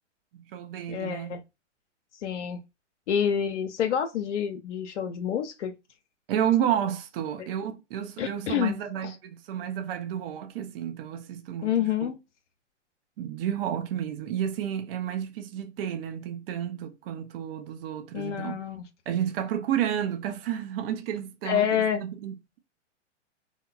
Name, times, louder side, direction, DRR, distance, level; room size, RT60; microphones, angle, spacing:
voice 1, 0.3-1.4 6.3-12.1 13.2-18.6 19.1-22.6, right 10 dB, 50° right, 0.6 m, -31 dB
voice 2, 0.9-1.4 2.1-2.6 3.1-5.7 8.2-8.8 9.0-9.2 11.6-12.2 18.1-18.8 21.4-22.0, left 9 dB, 70° left, 0.5 m, -28 dB
2.9 x 2.1 x 2.3 m
hypercardioid pair, 120°, 36 cm